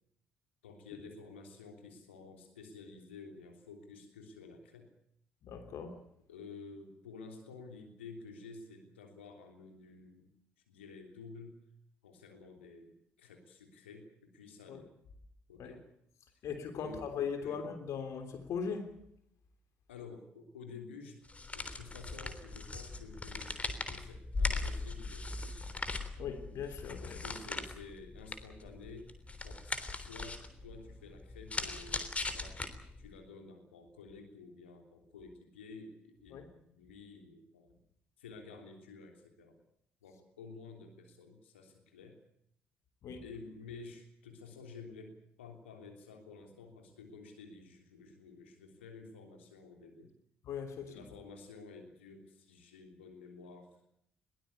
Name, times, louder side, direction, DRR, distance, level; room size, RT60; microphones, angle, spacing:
voice 1, 0.6-4.9 6.3-10.3 10.7-11.6 12.0-14.9 15.5-15.8 16.7-17.1 17.4-17.6 19.9-21.2 21.5-25.8 27.0-29.1 29.4-32.6 33.0-37.8 38.2-39.6 40.0-42.2 43.2-50.1 50.9-53.8, left 4 dB, 75° left, 3.3 m, -51 dB
voice 2, 5.4-6.0 14.7-14.8 15.6-15.7 16.4-18.9 26.2-27.2 36.3-36.4 43.0-43.2 50.4-51.0, left 6 dB, 50° left, 3.3 m, -39 dB
sound 1, 21.2-33.1, left 3 dB, 20° left, 3.5 m, -39 dB
22.0 x 18.5 x 8.2 m
figure-of-eight pair, 50°, 6 cm